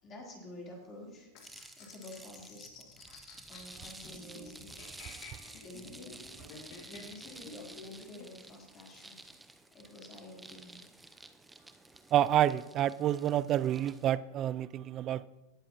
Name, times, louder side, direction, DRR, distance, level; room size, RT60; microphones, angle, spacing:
voice 1, 0.0-1.3 1.7-2.7 3.5-4.7 5.6-6.1 6.9-9.2 9.7-10.8, left 1 dB, 30° left, 3.7 m, -49 dB
sound 1, 1.3-8.3, left 4 dB, 50° left, 2.3 m, -51 dB
sound 2, 1.4-14.1, right 2 dB, 5° right, 0.7 m, -52 dB
voice 2, 12.1-15.3, right 12 dB, 35° right, 0.4 m, -28 dB
19.0 x 7.6 x 3.0 m
hypercardioid pair, 115°, 0 cm